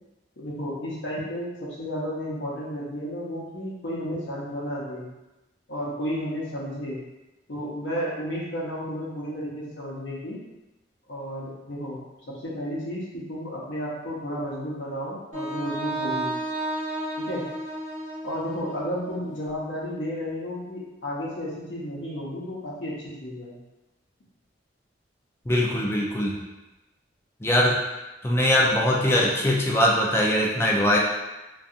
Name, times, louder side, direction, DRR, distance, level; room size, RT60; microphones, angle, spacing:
voice 1, 0.4-5.1 5.7-7.0 7.5-10.4 11.1-12.0 12.3-16.3 17.2-17.5 18.2-23.6, equal, 80° left, -6 dB, 0.7 m, -32 dB
Wind instrument woodwind instrument, 15.3-19.4, right 1 dB, 45° right, 0.6 m, -32 dB
voice 2, 25.5-26.3 27.4-27.8 28.2-31.0, left 1 dB, 15° left, -3 dB, 0.4 m, -21 dB
2.7 x 2.3 x 2.4 m, 1.1 s
head